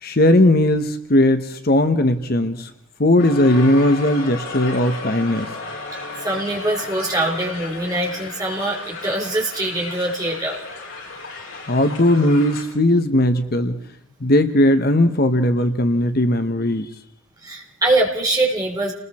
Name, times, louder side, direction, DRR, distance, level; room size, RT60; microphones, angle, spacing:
voice 1, 0.0-2.7 3.0-5.5 11.7-13.8 14.2-16.9, left 1 dB, 50° left, 9 dB, 1.1 m, -17 dB
Crowd, 3.2-12.6, left 3 dB, 75° left, 6.3 m, -34 dB
voice 2, 6.2-10.6 17.4-18.9, right 2 dB, 20° right, -1 dB, 4.0 m, -23 dB
29.0 x 20.5 x 4.3 m, 0.69 s
head